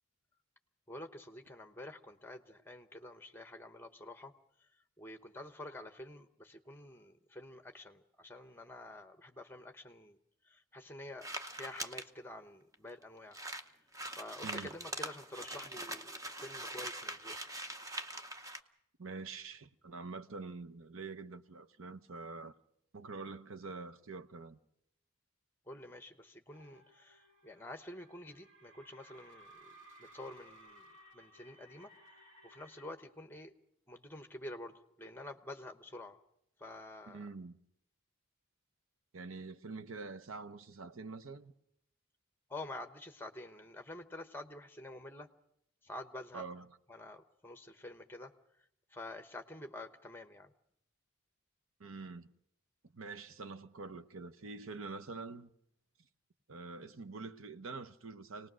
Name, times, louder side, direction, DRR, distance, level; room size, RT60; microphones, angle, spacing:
voice 1, 0.9-4.3 4.6-4.7 5.0-10.2 10.4-13.4 14.1-17.4 25.7-30.9 31.1-31.9 32.4-33.5 33.9-36.2 36.6-37.3 42.5-45.3 45.8-46.4 46.9-48.3 48.9-50.5, left 1 dB, 10° left, 1.0 m, -48 dB
sound 1, 11.2-12.0 12.7-12.8 13.0-13.1 13.3-18.6, right 1 dB, 15° right, 0.7 m, -43 dB
voice 2, 19.0-22.5 22.9-24.6 37.1-37.6 39.1-41.5 46.3-46.7 51.8-52.3 52.8-55.5 56.5-58.5, right 4 dB, 75° right, 0.9 m, -46 dB
sound 2, 26.5-32.9, right 1 dB, 60° right, 2.8 m, -59 dB
25.5 x 19.0 x 6.2 m
head